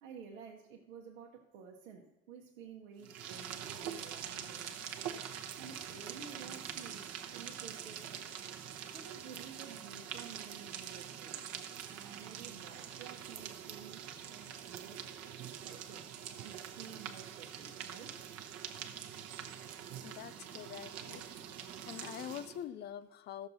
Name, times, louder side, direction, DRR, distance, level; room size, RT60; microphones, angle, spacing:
voice 1, 0.0-4.7 5.6-8.3 8.9-11.5 11.9-15.1 15.5-18.3, right 6 dB, 60° right, 1.1 m, -52 dB
sound 1, 3.0-22.6, right 9 dB, 35° right, 1.0 m, -45 dB
voice 2, 20.0-21.2 21.9-23.5, left 10 dB, 25° left, 0.4 m, -45 dB
15.0 x 6.6 x 4.0 m
figure-of-eight pair, 70°, 42 cm